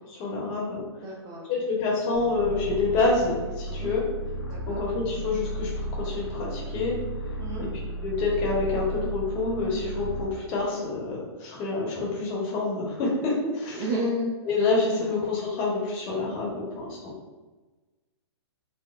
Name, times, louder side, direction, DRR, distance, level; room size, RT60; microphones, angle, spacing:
voice 1, 0.1-0.8 1.5-4.0 4.7-7.0 7.6-7.7 8.0-13.8 14.5-17.1, left 3 dB, 35° left, -3 dB, 0.9 m, -27 dB
voice 2, 1.0-1.4 3.7-3.9 4.5-4.8 7.4-7.7 13.7-14.3 15.0-15.2 17.1-17.2, equal, 25° right, -3 dB, 0.7 m, -31 dB
sound 1, 2.1-10.4, right 1 dB, 80° left, 1.0 m, -34 dB
4.1 x 2.1 x 2.3 m, 1.3 s
hypercardioid pair, 130°, 14 cm